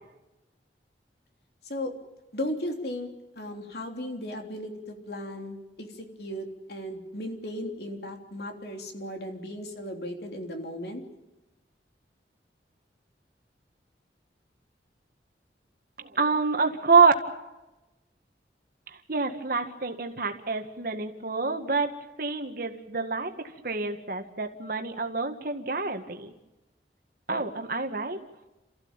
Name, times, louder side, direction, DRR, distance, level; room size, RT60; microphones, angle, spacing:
voice 1, 2.3-3.1 3.3-11.0, left 1 dB, 65° left, 3 dB, 3.3 m, -36 dB
voice 2, 16.0-17.1 19.1-21.9 22.2-23.3 23.6-26.3 27.3-28.2, right 4 dB, 55° right, 5 dB, 1.9 m, -26 dB
29.0 x 15.0 x 9.0 m, 1.0 s
head